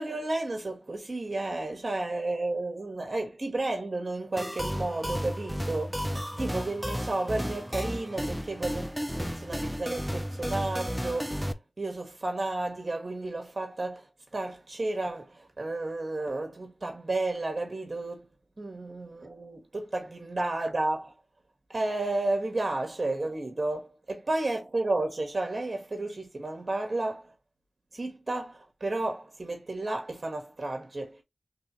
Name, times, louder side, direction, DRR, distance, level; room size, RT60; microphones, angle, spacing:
voice 1, 0.0-6.0 6.3-14.0 14.3-18.3 18.6-21.1 21.7-27.3 27.9-31.2, right 2 dB, 55° right, 1.7 m, -32 dB
sound 1, 4.4-11.5, equal, ahead, 0.5 m, -33 dB
4.8 x 3.4 x 3.0 m
wide cardioid pair, 55°, 0 cm